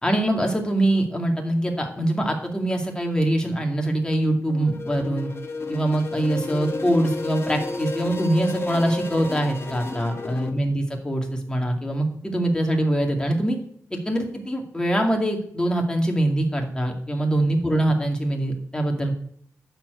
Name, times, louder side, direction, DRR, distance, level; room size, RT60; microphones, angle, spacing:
voice 1, 0.0-5.3 5.7-13.6 13.9-19.1, right 1 dB, 15° left, 2 dB, 2.2 m, -23 dB
sound 1, 4.5-10.5, left 2 dB, 45° left, 1.3 m, -31 dB
11.5 x 4.5 x 7.9 m, 0.64 s
wide cardioid pair, 90°, 6 cm